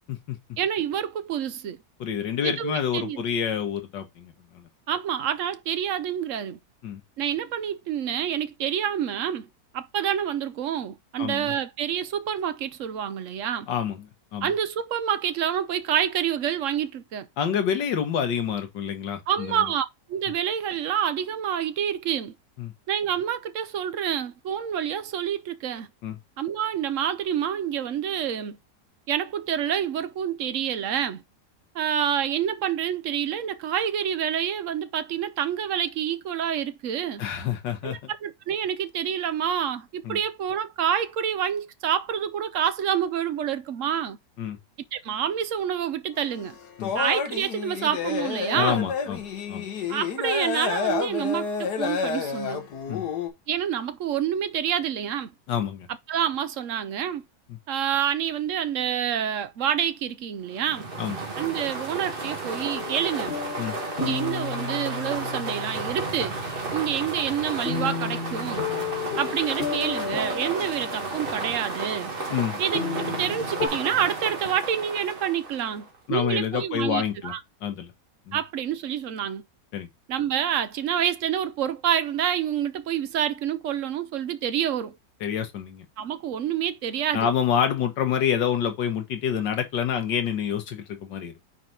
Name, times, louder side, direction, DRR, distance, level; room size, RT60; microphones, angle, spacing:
voice 1, 0.6-1.8 2.4-3.2 4.9-6.6 7.2-9.5 9.7-13.7 14.4-17.3 19.3-22.3 22.9-25.9 26.4-28.6 29.1-31.2 31.7-37.2 37.8-44.2 44.9-46.6 46.9-48.9 49.9-52.7 53.5-55.3 56.1-57.2 57.7-60.9 61.4-63.4 64.0-66.4 66.7-68.7 69.2-72.1 72.6-77.4 78.3-79.4 80.1-85.0 86.0-87.3, right 9 dB, 60° right, 0.9 m, -27 dB
voice 2, 2.0-4.6 6.8-7.0 11.2-11.5 13.7-14.5 17.4-19.7 22.6-22.7 26.0-26.2 37.2-38.0 40.0-40.2 44.4-44.6 46.8-46.9 48.5-49.2 49.5-49.6 52.9-53.0 55.5-55.9 61.0-61.2 63.6-63.8 72.3-72.6 76.1-77.3 77.6-77.9 78.3-78.4 79.7-79.9 85.2-85.8 87.1-91.3, left 8 dB, 90° left, 1.8 m, -27 dB
sound 1, 46.2-53.3, left 6 dB, 70° left, 1.7 m, -29 dB
sound 2, 60.5-76.0, right 3 dB, 35° right, 1.5 m, -33 dB
sound 3, 62.7-73.7, left 5 dB, 35° left, 1.5 m, -33 dB
5.7 x 4.5 x 3.8 m
omnidirectional pair, 1.9 m